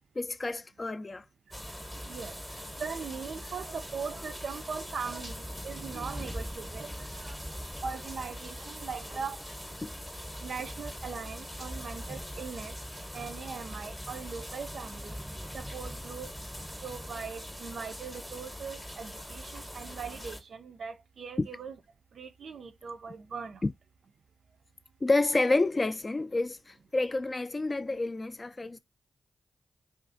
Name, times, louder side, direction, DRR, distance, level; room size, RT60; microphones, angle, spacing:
voice 1, 0.2-1.2 9.8-9.9 21.4-21.5 23.6-23.7 25.0-28.8, left 2 dB, 35° left, 0.3 m, -29 dB
sound 1, 1.5-20.4, equal, 5° left, 0.7 m, -41 dB
voice 2, 2.1-7.4 7.8-9.4 10.4-12.7 13.1-15.2 15.5-16.3 16.8-21.8 22.1-23.6, right 5 dB, 70° right, 0.3 m, -40 dB
2.4 x 2.3 x 2.5 m
supercardioid pair, 45°, 0 cm